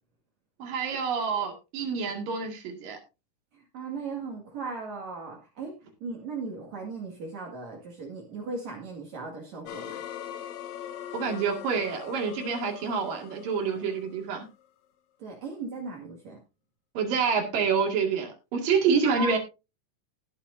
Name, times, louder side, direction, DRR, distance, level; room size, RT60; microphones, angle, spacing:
voice 1, 0.6-3.0 11.1-14.5 17.0-19.4, right 5 dB, 85° right, 4 dB, 3.8 m, -27 dB
voice 2, 3.5-5.7 6.0-9.9 15.2-16.4 19.0-19.4, right 4 dB, 60° right, 0 dB, 3.1 m, -37 dB
sound 1, 9.7-14.7, left 10 dB, 70° left, 2.0 m, -41 dB
18.5 x 7.4 x 2.6 m, 0.28 s
omnidirectional pair, 3.8 m